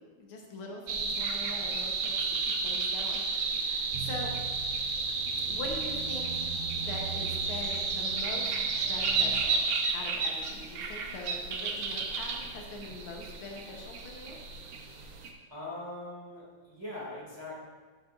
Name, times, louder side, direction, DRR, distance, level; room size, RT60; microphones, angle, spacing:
voice 1, 0.0-4.4 5.5-6.4 6.8-14.4, left 2 dB, 85° left, 0 dB, 2.1 m, -43 dB
sound 1, 0.9-15.3, right 4 dB, 70° right, 1.6 m, -32 dB
sound 2, 3.9-9.4, right 6 dB, 85° right, 1.6 m, -42 dB
voice 2, 15.5-17.6, left 1 dB, 10° right, -6 dB, 2.5 m, -41 dB
11.5 x 8.5 x 2.6 m, 1.4 s
omnidirectional pair, 2.3 m